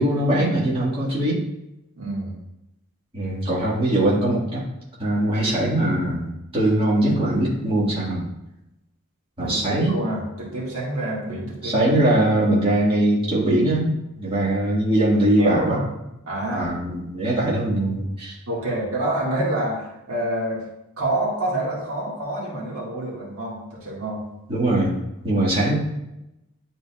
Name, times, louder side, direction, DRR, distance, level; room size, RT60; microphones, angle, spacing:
voice 1, 0.0-1.4 3.1-4.6 5.0-8.2 9.4-9.9 11.6-15.8 16.5-18.4 24.5-25.0 25.2-25.7, right 1 dB, 25° right, -8 dB, 1.8 m, -21 dB
voice 2, 2.0-2.4 9.4-11.9 15.4-15.9 16.3-16.8 17.2-17.4 18.5-20.6 21.0-24.3 25.2-25.3, right 1 dB, 80° right, -5 dB, 1.9 m, -27 dB
10.0 x 4.0 x 2.4 m, 0.90 s
head